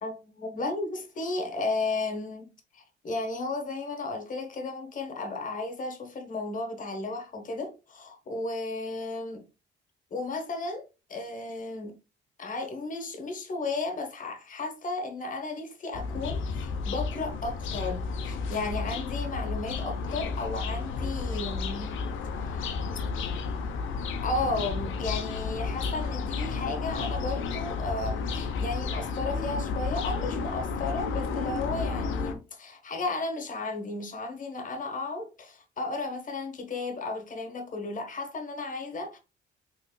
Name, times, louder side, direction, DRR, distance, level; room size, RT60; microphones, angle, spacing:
voice 1, 0.0-2.4 2.7-9.4 10.1-10.8 11.1-11.9 12.4-21.9 22.4-22.8 24.2-39.2, left 3 dB, 40° left, 1.1 m, -34 dB
sound 1, 15.9-32.3, left 4 dB, 80° left, 0.6 m, -32 dB
3.9 x 3.2 x 2.2 m
cardioid pair, 90°, 20 cm